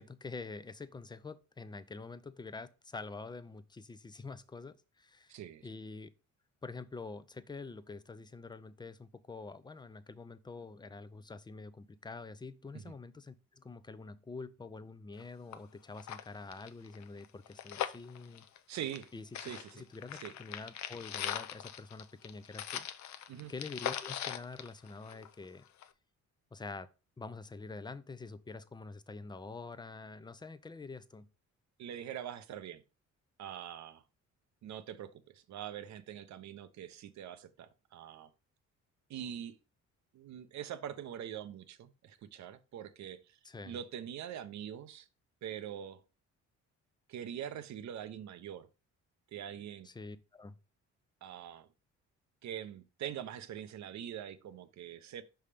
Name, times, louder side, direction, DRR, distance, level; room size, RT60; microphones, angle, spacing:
voice 1, 0.0-5.4 5.6-6.1 6.6-18.5 19.1-19.3 19.7-23.2 23.5-25.7 26.5-26.9 27.2-31.3 43.4-43.8 49.8-50.6, left 3 dB, 15° left, 0.5 m, -46 dB
voice 2, 5.3-5.7 12.7-12.9 18.7-19.1 19.4-19.8 20.2-20.3 23.3-23.5 31.8-32.8 33.4-34.0 34.6-38.3 39.1-39.5 40.1-43.4 43.6-45.1 45.4-46.0 47.1-48.7 49.3-49.9 51.2-51.7 52.4-55.2, right 10 dB, 65° right, 0.7 m, -43 dB
sound 1, 15.2-15.3 15.5-15.6 15.9-19.1 19.3-25.4 25.8-25.9, left 10 dB, 65° left, 0.6 m, -40 dB
5.5 x 3.5 x 4.9 m
cardioid pair, 90°, 30 cm